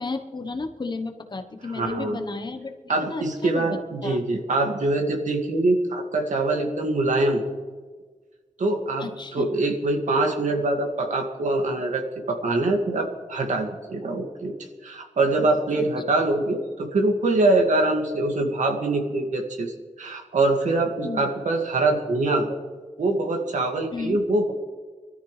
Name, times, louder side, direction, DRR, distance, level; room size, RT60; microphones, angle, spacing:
voice 1, 0.0-4.2 9.0-9.5 15.8-15.9 21.0-21.2 23.9-24.2, left 3 dB, 35° left, 6 dB, 1.1 m, -33 dB
voice 2, 1.8-2.2 2.9-7.4 8.6-14.5 14.8-22.6 23.0-24.5, right 2 dB, 75° right, 2 dB, 2.1 m, -24 dB
24.0 x 13.5 x 3.3 m, 1.4 s
wide cardioid pair, 135°, 13 cm